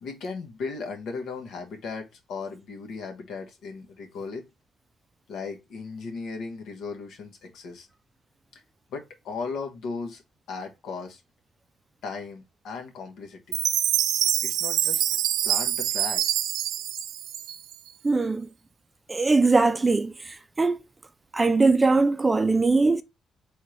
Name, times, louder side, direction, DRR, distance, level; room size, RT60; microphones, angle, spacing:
voice 1, 0.0-4.5 5.3-7.9 8.9-10.2 10.5-11.2 12.0-13.6 14.4-15.0 15.4-16.2, left 4 dB, 75° left, 1.2 m, -36 dB
Chime, 13.5-17.9, right 11 dB, 85° right, 0.4 m, -25 dB
voice 2, 18.0-18.5 19.1-20.1 20.6-20.8 21.3-23.0, right 3 dB, 20° right, 0.4 m, -21 dB
4.4 x 3.4 x 3.2 m
cardioid pair, 90°, 0 cm